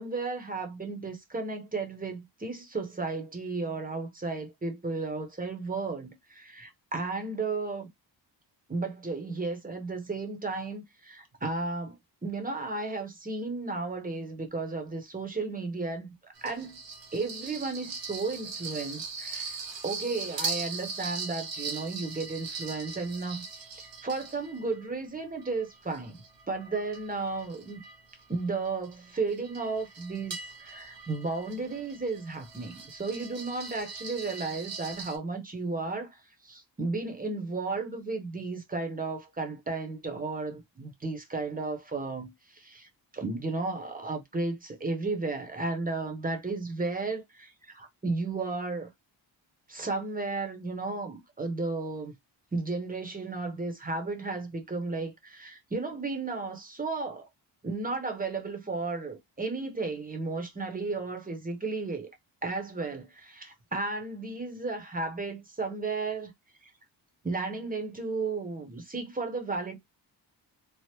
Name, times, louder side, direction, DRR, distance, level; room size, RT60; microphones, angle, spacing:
voice 1, 0.0-7.9 8.7-12.0 12.2-16.8 17.1-19.6 19.8-27.8 28.3-48.9 49.7-52.1 52.5-57.3 57.6-62.1 62.4-66.3 67.2-69.8, right 3 dB, 20° right, 0.9 m, -34 dB
sound 1, 16.4-24.9 25.4-35.2, right 4 dB, 70° right, 1.1 m, -40 dB
2.9 x 2.0 x 3.3 m
wide cardioid pair, 105°, 45 cm